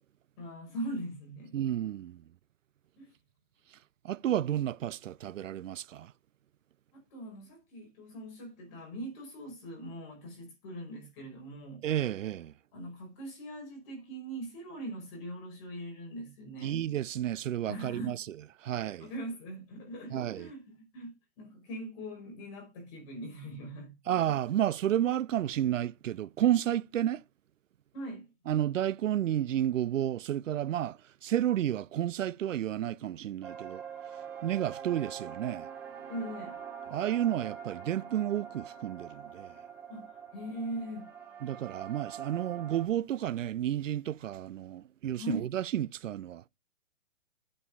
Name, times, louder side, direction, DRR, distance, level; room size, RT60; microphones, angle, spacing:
voice 1, 0.4-1.5 3.0-3.1 6.9-11.9 12.7-16.8 17.7-18.2 19.0-24.2 27.9-28.3 36.1-36.6 39.9-41.1 45.2-45.5, right 1 dB, 25° left, 5.4 m, -41 dB
voice 2, 1.5-2.2 4.0-6.1 11.8-12.5 16.6-19.1 20.1-20.5 24.1-27.2 28.5-33.8 34.4-35.7 36.9-39.5 41.4-46.4, right 11 dB, 80° right, 0.6 m, -31 dB
sound 1, 33.4-42.9, right 8 dB, 5° right, 0.7 m, -44 dB
8.7 x 5.4 x 5.5 m
hypercardioid pair, 160°, 38 cm